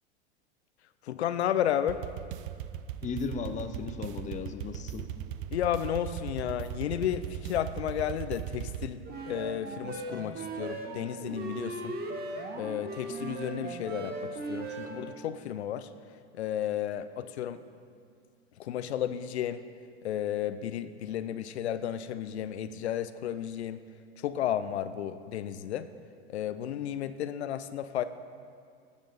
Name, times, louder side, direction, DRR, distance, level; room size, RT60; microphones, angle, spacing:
voice 1, 1.0-2.0 5.5-12.0 12.6-15.9 16.3-17.6 18.6-19.6 20.0-23.8 24.2-25.9 26.3-28.0, left 10 dB, 85° left, 12 dB, 0.5 m, -33 dB
sound 1, 1.9-8.9, right 11 dB, 55° right, 0.6 m, -39 dB
voice 2, 3.0-5.1, left 5 dB, 20° left, 8 dB, 0.6 m, -36 dB
sound 2, 9.0-15.1, right 3 dB, 30° right, 1.4 m, -38 dB
15.0 x 7.1 x 4.0 m, 2.2 s
hypercardioid pair, 95°, 32 cm